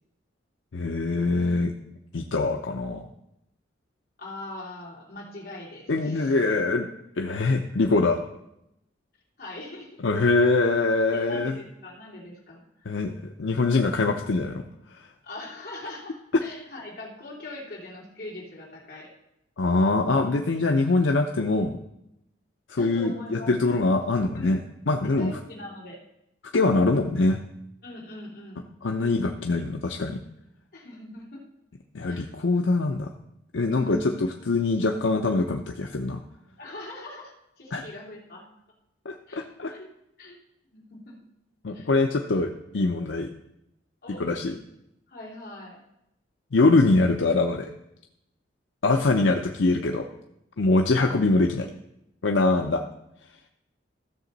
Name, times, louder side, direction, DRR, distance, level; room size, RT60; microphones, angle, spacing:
voice 1, 0.7-1.7 2.1-3.1 5.9-6.9 7.2-8.2 10.0-11.6 12.9-14.6 14.9-15.0 19.6-21.8 22.7-24.6 24.9-25.3 26.5-27.4 28.8-30.2 31.9-33.1 33.5-34.0 34.5-36.2 37.7-37.8 39.1-39.7 41.6-43.3 44.2-44.5 46.5-47.7 48.8-50.1 50.6-51.7 52.2-52.8, left 3 dB, 80° left, 4 dB, 0.6 m, -23 dB
voice 2, 4.2-6.3 9.4-10.0 11.1-12.6 15.2-19.1 22.8-23.8 24.3-24.6 25.2-26.0 27.8-28.7 30.7-31.4 32.0-32.3 33.7-34.1 36.6-38.4 39.3-39.9 40.2-40.4 40.7-41.1 41.7-41.9 44.0-44.2 45.1-45.8, left 1 dB, 55° left, -3 dB, 2.8 m, -41 dB
14.5 x 6.7 x 4.0 m, 0.84 s
head